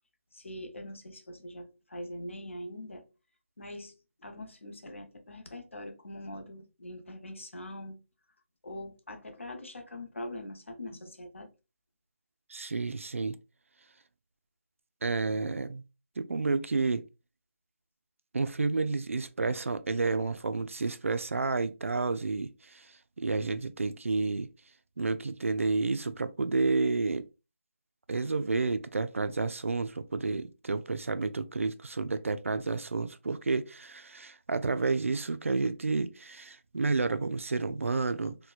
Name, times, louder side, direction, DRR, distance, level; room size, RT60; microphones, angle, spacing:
voice 1, 0.3-3.1 3.6-3.9 4.2-8.0 8.6-11.5 13.1-13.2, left 1 dB, 70° left, 0.8 m, -43 dB
voice 2, 12.5-13.4 15.0-15.8 16.2-17.1 18.3-24.5 25.0-27.3 28.1-38.4, right 3 dB, 80° right, 0.4 m, -30 dB
4.2 x 2.2 x 2.3 m
figure-of-eight pair, 180°, 7 cm